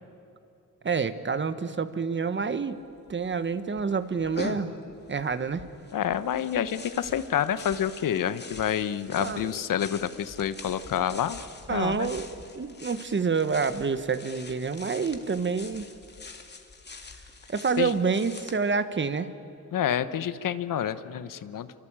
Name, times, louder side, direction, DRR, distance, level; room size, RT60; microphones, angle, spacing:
voice 1, 0.8-2.8 3.1-4.7 5.1-5.7 9.2-9.6 11.7-12.3 12.5-15.9 17.5-19.3, right 5 dB, 35° right, 12 dB, 1.4 m, -28 dB
sound 1, 2.4-2.5 2.7-3.4 3.8-18.6, left 4 dB, 30° left, 2.3 m, -44 dB
voice 2, 5.9-11.4 11.7-12.1 17.8-17.9 19.7-21.7, left 9 dB, 70° left, 13 dB, 1.2 m, -28 dB
27.5 x 24.5 x 8.9 m, 2.7 s
cardioid pair, 105°, 33 cm